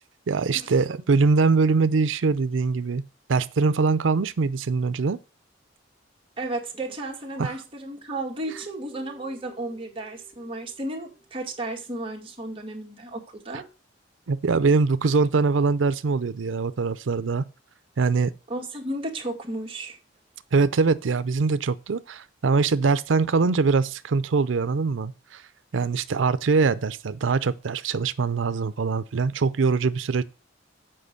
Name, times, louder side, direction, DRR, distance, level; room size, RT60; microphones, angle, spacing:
voice 1, 0.3-3.0 3.3-5.2 7.4-7.5 13.5-13.6 14.3-17.4 18.0-18.3 20.5-25.4 25.7-30.2, right 4 dB, 85° right, 0.5 m, -23 dB
voice 2, 6.4-13.6 18.5-20.0, right 2 dB, 30° right, 2.0 m, -33 dB
sound 1, 8.4-12.2, right 2 dB, 50° right, 2.3 m, -52 dB
7.7 x 5.0 x 6.5 m
head